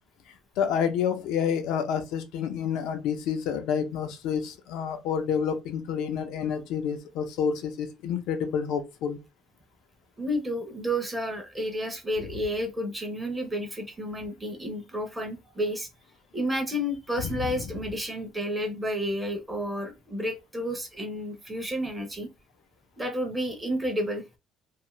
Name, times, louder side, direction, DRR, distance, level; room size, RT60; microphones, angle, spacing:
voice 1, 0.6-9.2 17.3-17.4, left 7 dB, 75° left, 0.6 m, -29 dB
voice 2, 10.2-15.9 16.3-22.3 23.0-24.2, equal, 10° right, 0.6 m, -31 dB
2.5 x 2.4 x 3.0 m
cardioid pair, 165°, 0 cm